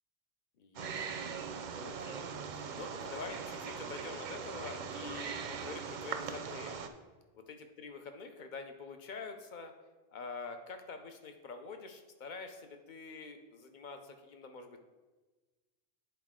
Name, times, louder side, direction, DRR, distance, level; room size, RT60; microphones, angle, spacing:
voice 1, 0.6-1.2 1.8-2.2 2.5-6.8 7.3-9.7 10.1-14.8, left 4 dB, 55° left, 6 dB, 0.8 m, -46 dB
Wild animals, 0.7-6.9, right 6 dB, 55° right, 0.6 m, -41 dB
9.2 x 4.4 x 3.6 m, 1.3 s
omnidirectional pair, 1.0 m